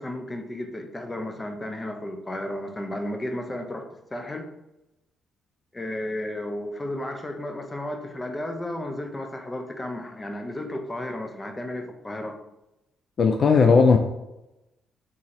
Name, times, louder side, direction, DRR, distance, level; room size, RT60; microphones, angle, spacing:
voice 1, 0.0-4.5 5.7-12.4, left 1 dB, 20° left, 4 dB, 0.7 m, -33 dB
voice 2, 13.2-14.0, left 5 dB, 50° left, 5 dB, 0.4 m, -16 dB
3.7 x 3.0 x 4.2 m, 0.92 s
cardioid pair, 90°, 0 cm